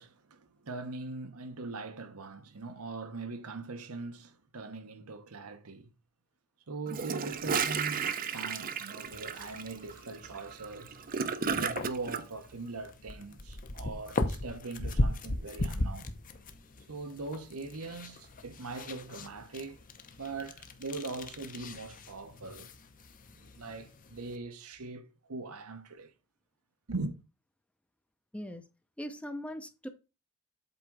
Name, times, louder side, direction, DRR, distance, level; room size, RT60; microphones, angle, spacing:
voice 1, 0.0-5.9 6.7-11.0 11.5-16.1 16.9-19.8 20.2-22.7 23.3-26.1 26.9-27.1, right 3 dB, 75° right, 1.0 m, -41 dB
Gurgling / Toilet flush, 6.9-12.2, right 6 dB, 40° right, 0.6 m, -33 dB
sound 1, 9.0-24.4, left 1 dB, 40° left, 0.8 m, -38 dB
voice 2, 29.0-29.9, equal, 5° left, 0.6 m, -40 dB
8.2 x 3.7 x 4.7 m
head